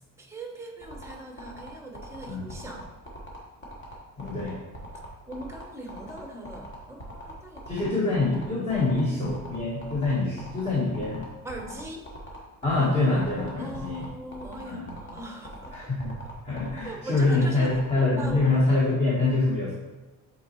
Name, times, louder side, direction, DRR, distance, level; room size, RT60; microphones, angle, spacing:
voice 1, 0.2-2.9 5.3-8.1 11.4-12.0 13.6-15.9 16.8-17.7 18.2-18.6, right 1 dB, 10° right, 2 dB, 0.9 m, -40 dB
sound 1, 0.8-18.6, left 1 dB, 30° left, 1.4 m, -42 dB
voice 2, 4.2-4.5 7.7-11.3 12.6-14.0 14.6-14.9 15.7-19.7, left 2 dB, 15° left, -7 dB, 1.3 m, -25 dB
8.2 x 4.0 x 3.0 m, 1.1 s
cardioid pair, 140°, 36 cm